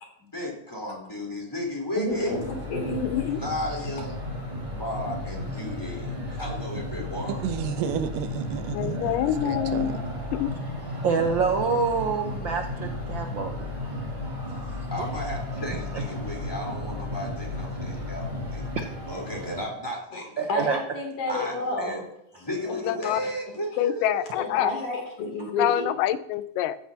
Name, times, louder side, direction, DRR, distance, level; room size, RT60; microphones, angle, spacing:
voice 1, 0.2-2.3 3.4-4.1 4.7-7.4 14.9-18.7 19.1-20.5 21.3-22.0 22.4-24.2, left 1 dB, 5° left, 3.8 m, -34 dB
voice 2, 2.0-2.4 2.7-3.1 20.1-22.1 22.6-23.3 24.3-25.9, left 2 dB, 65° left, 4.5 m, -30 dB
sound 1, 2.1-19.6, left 1 dB, 15° right, 6.2 m, -34 dB
voice 3, 2.9-3.4 8.7-9.9 10.3-10.5 22.8-23.2 23.8-24.7 25.6-26.8, left 12 dB, 85° left, 2.2 m, -26 dB
voice 4, 7.4-9.2 9.4-10.0, right 8 dB, 90° right, 2.5 m, -31 dB
voice 5, 11.0-13.5 15.0-15.1 15.9-16.0 18.8-18.9 20.4-20.8, right 5 dB, 70° right, 1.1 m, -26 dB
15.5 x 14.5 x 2.9 m
omnidirectional pair, 3.7 m